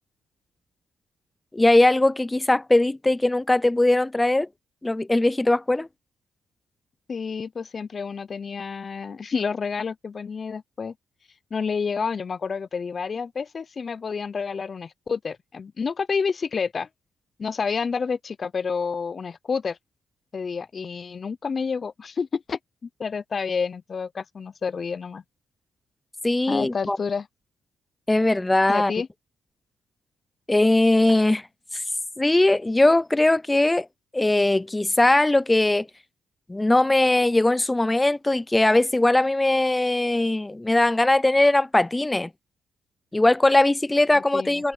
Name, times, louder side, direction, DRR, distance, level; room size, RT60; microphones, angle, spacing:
voice 1, 1.5-4.5 4.8-5.9 26.2-27.0 28.1-28.9 30.5-31.5 31.7-31.8 32.2-33.9 34.1-35.9 36.5-42.3 43.1-44.7, left 2 dB, 15° left, 0.4 m, -20 dB
voice 2, 7.1-10.9 11.5-16.9 17.4-19.8 20.3-25.2 26.5-27.3 28.7-29.1 44.1-44.6, left 5 dB, 40° left, 0.8 m, -29 dB
cardioid pair, 90°, 0 cm